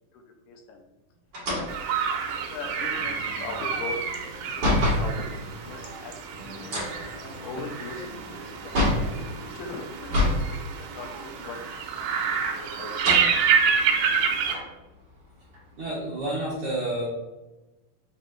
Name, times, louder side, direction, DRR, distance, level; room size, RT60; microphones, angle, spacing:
voice 1, 0.1-0.8 1.5-1.7 2.3-4.0 4.2-6.8 7.2-8.7 9.4-10.3 10.8-11.7 11.9-13.1, left 4 dB, 80° left, 3 dB, 2.1 m, -40 dB
sound 1, 1.3-5.1 6.6-9.1 10.0-10.5 10.8-10.9 12.0-12.5 12.9-13.3 13.9-14.0 14.4-15.8, left 1 dB, 45° right, 1.5 m, -27 dB
sound 2, 1.7-14.5, right 6 dB, 80° right, 2.1 m, -28 dB
sound 3, 2.9-5.9 6.4-9.4, equal, 45° left, 1.6 m, -46 dB
voice 2, 15.8-17.1, right 1 dB, 65° right, -8 dB, 1.4 m, -29 dB
5.5 x 3.0 x 3.0 m, 1.1 s
omnidirectional pair, 4.0 m